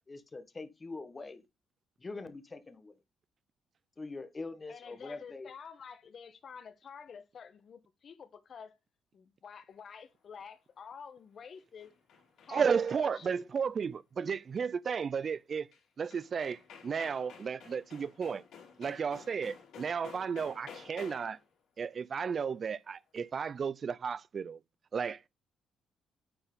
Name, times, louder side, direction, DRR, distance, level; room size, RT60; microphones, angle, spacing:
voice 1, 0.1-1.4 2.0-2.9 4.0-5.5, left 3 dB, 25° left, 1.1 m, -43 dB
voice 2, 4.7-8.8 9.1-11.9 12.4-13.5, left 6 dB, 55° left, 1.1 m, -49 dB
sound 1, 11.6-13.4 15.7-15.8 16.1-21.5, left 6 dB, 75° left, 3.0 m, -52 dB
voice 3, 12.5-15.7 16.0-18.4 18.8-21.4 21.8-24.6 24.9-25.3, right 6 dB, 45° right, 0.4 m, -33 dB
8.6 x 4.5 x 3.7 m
cardioid pair, 90°, 0 cm